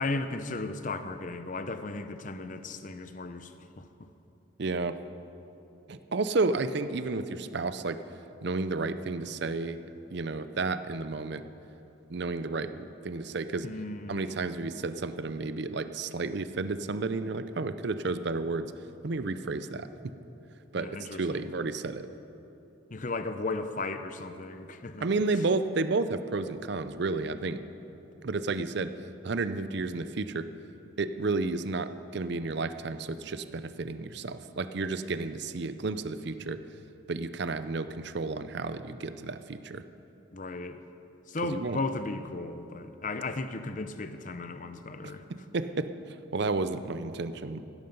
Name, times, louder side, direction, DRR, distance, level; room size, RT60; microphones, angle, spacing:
voice 1, 0.0-3.5 3.8-3.9 13.6-14.5 20.8-21.5 22.9-25.0 40.3-40.8 41.3-45.2, left 3 dB, 40° left, 9 dB, 0.6 m, -35 dB
voice 2, 4.6-5.0 5.9-8.0 8.4-9.8 10.1-11.4 12.1-12.7 13.0-13.7 14.1-18.7 19.0-19.9 20.7-22.1 25.0-27.6 28.2-28.9 29.2-30.5 31.0-36.6 37.1-39.8 41.4-41.8 45.3-47.6, right 3 dB, 55° right, 11 dB, 0.5 m, -31 dB
16.0 x 13.0 x 5.4 m, 3.0 s
head